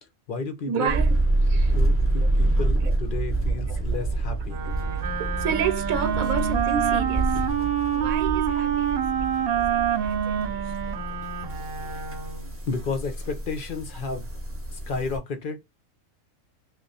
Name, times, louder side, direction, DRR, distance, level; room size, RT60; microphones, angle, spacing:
voice 1, 0.0-1.0 1.7-4.6 10.0-10.1 12.7-14.3 14.7-15.7, left 4 dB, 50° left, 0.7 m, -32 dB
voice 2, 0.7-1.8 2.8-2.9 3.7-3.8 5.2-7.4 7.9-11.0, right 7 dB, 75° right, 1.1 m, -31 dB
sound 1, 0.9-15.2, right 2 dB, 15° right, 0.6 m, -27 dB
Wind instrument woodwind instrument, 4.5-12.5, right 9 dB, 60° right, 0.6 m, -27 dB
3.2 x 2.4 x 3.9 m
omnidirectional pair, 1.5 m